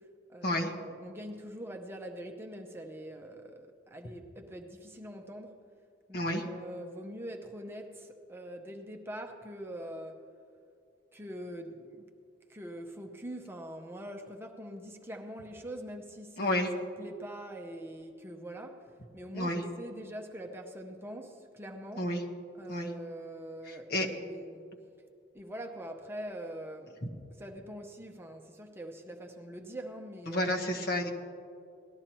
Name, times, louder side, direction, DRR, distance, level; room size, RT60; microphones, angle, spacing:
voice 1, 0.3-5.6 6.1-10.3 11.1-12.1 12.5-22.1 22.6-24.7 25.3-27.0 27.3-30.7, right 1 dB, 15° right, 0.7 m, -44 dB
voice 2, 16.4-16.7 19.3-19.6 22.0-22.2 22.7-22.9 23.7-24.1 30.3-31.1, left 1 dB, 55° left, 1.3 m, -30 dB
18.5 x 12.5 x 3.0 m
head